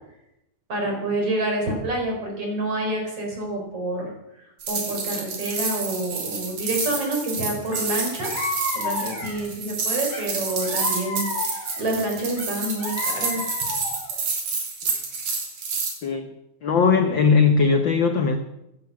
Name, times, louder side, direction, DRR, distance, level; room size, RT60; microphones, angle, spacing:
voice 1, 0.7-4.1 4.7-8.3 8.7-13.6, right 1 dB, 50° right, 1 dB, 5.4 m, -28 dB
sound 1, 4.6-15.9, right 4 dB, 65° right, 4.5 m, -29 dB
sound 2, 7.7-7.8 8.2-9.5 10.1-11.8 12.4-14.1, left 3 dB, 15° left, 4.1 m, -32 dB
voice 2, 16.6-18.4, left 5 dB, 70° left, 6 dB, 1.1 m, -19 dB
16.0 x 10.5 x 7.5 m, 0.89 s
omnidirectional pair, 3.5 m